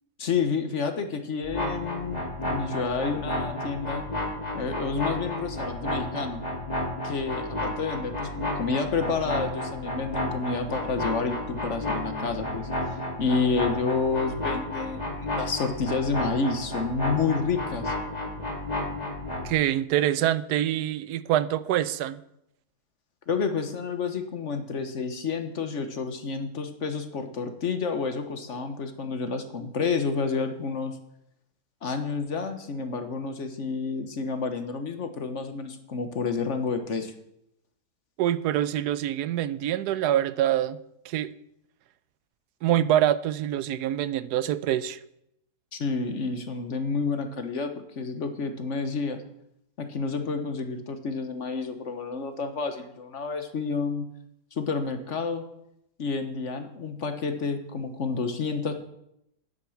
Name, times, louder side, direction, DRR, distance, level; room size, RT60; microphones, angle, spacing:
voice 1, 0.2-4.0 4.5-6.4 7.0-17.9 23.3-31.0 31.8-37.1 45.7-49.2 49.8-54.1 54.5-55.4 56.0-58.7, left 4 dB, 50° left, 8 dB, 1.2 m, -29 dB
sound 1, 1.4-19.5, left 1 dB, 25° left, 2.6 m, -32 dB
voice 2, 19.4-22.2 38.2-40.8 41.0-41.3 42.6-45.0, right 12 dB, 85° right, 15 dB, 1.2 m, -25 dB
9.5 x 8.1 x 7.1 m, 0.80 s
omnidirectional pair, 1.7 m